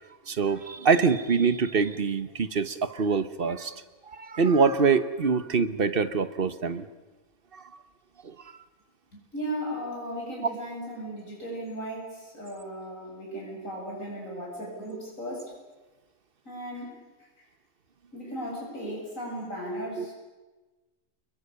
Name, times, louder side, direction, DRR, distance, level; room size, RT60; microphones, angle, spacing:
voice 1, 0.3-3.7 4.2-6.9 20.0-20.1, right 5 dB, 45° right, 12 dB, 1.2 m, -24 dB
voice 2, 9.1-15.5 16.4-17.0 18.1-20.1, equal, 85° left, -2 dB, 8.4 m, -36 dB
29.0 x 22.0 x 6.9 m, 1.2 s
omnidirectional pair, 1.3 m